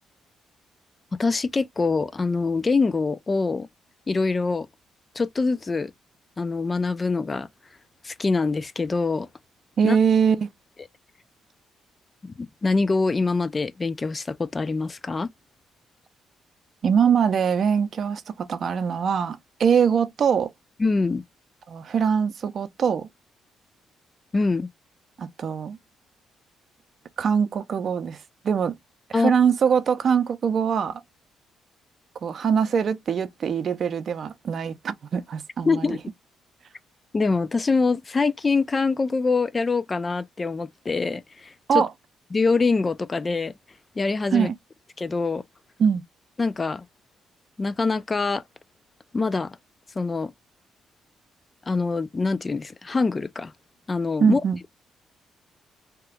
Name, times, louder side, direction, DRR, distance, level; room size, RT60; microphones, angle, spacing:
voice 1, 1.2-3.7 4.1-4.7 5.2-5.9 6.4-7.5 8.0-9.3 9.8-10.0 12.2-15.3 20.8-21.2 24.3-24.7 29.1-29.3 35.6-36.0 37.1-41.8 42.3-43.6 44.0-44.5 45.0-45.4 46.4-46.8 47.6-48.4 49.1-49.6 50.0-50.3 51.7-53.5 53.9-54.4, left 4 dB, 30° left, 0.3 m, -24 dB
voice 2, 9.8-10.5 16.8-20.5 21.7-23.1 25.2-25.8 27.2-28.2 28.4-28.8 29.1-31.0 32.2-35.9 41.7-41.9 44.3-44.5 45.8-46.0 54.2-54.6, right 7 dB, 55° right, 0.5 m, -22 dB
2.9 x 2.3 x 3.3 m
cardioid pair, 90°, 0 cm